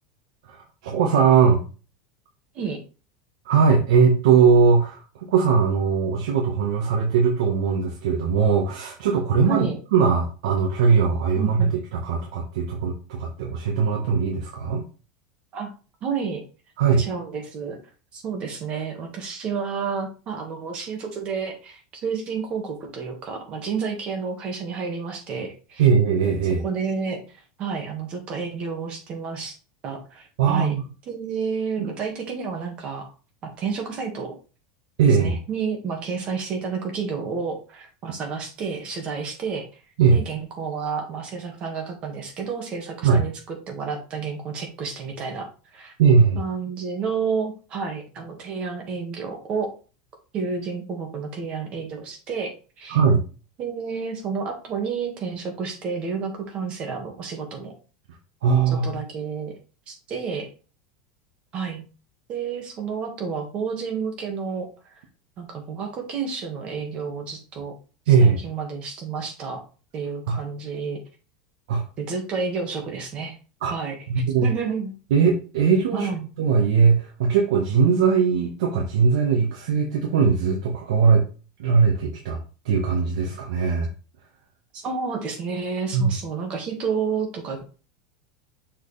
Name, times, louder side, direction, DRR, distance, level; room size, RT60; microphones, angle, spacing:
voice 1, 0.8-1.6 3.4-9.7 9.9-14.8 16.8-17.0 25.8-26.6 30.4-30.8 31.8-31.9 35.0-35.4 40.0-40.2 43.0-43.2 46.0-46.4 52.9-53.2 58.4-59.0 68.1-68.4 70.3-70.4 71.7-71.8 73.6-73.7 74.1-74.5 75.1-76.1 76.4-81.2 81.6-82.4 82.6-83.9 85.9-86.1, right 5 dB, 80° right, 0 dB, 1.4 m, -20 dB
voice 2, 9.5-9.8 11.4-11.8 15.5-15.7 16.0-16.4 17.0-17.8 18.1-25.9 26.6-29.6 29.8-30.7 31.1-33.1 33.6-34.4 35.1-39.8 40.1-45.9 46.4-49.7 50.3-53.0 53.6-57.7 58.7-59.5 59.9-60.5 61.5-61.8 62.3-65.0 65.4-67.7 68.1-69.6 69.9-71.0 72.0-73.4 73.7-74.0 74.4-74.9 75.9-76.3 84.7-87.6, right 5 dB, 30° right, 3 dB, 1.8 m, -30 dB
6.4 x 4.4 x 3.4 m, 0.35 s
supercardioid pair, 165°, 3 cm